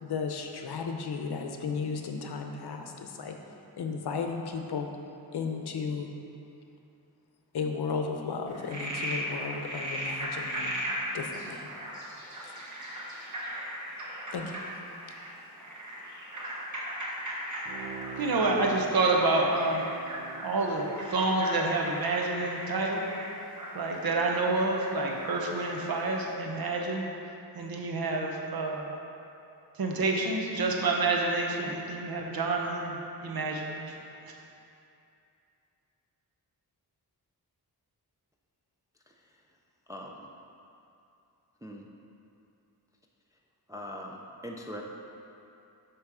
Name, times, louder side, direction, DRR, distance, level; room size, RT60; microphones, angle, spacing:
voice 1, 0.0-3.4 3.8-4.9 5.3-6.1 7.5-10.7 11.1-11.7 12.5-12.6 14.3-14.6, left 5 dB, 80° left, 4 dB, 0.7 m, -34 dB
Frog, 8.5-25.9, equal, 50° right, 1.3 m, -38 dB
Bowed string instrument, 17.7-22.3 22.7-22.8, right 5 dB, 85° right, 0.5 m, -45 dB
voice 2, 18.2-19.8 20.4-23.1 23.7-27.1 27.5-28.9 29.8-33.9, right 3 dB, 65° right, 0 dB, 0.9 m, -28 dB
voice 3, 39.9-40.3 41.6-41.8 43.7-44.8, equal, 10° right, -1 dB, 0.3 m, -41 dB
8.2 x 3.2 x 6.1 m, 2.7 s
wide cardioid pair, 165°, 39 cm